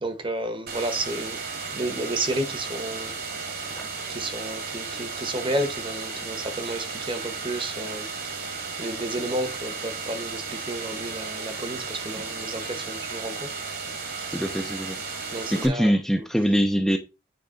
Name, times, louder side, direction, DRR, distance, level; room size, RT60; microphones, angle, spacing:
voice 1, 0.0-1.4 1.7-3.1 3.5-3.8 4.1-8.5 8.8-13.5 14.2-14.3 15.3-16.3, right 1 dB, 30° right, 1.2 m, -32 dB
sound 1, 0.7-15.7, right 4 dB, 55° right, 2.0 m, -34 dB
voice 2, 14.3-15.0 15.5-17.0, equal, ahead, 0.6 m, -23 dB
8.8 x 3.5 x 5.1 m
head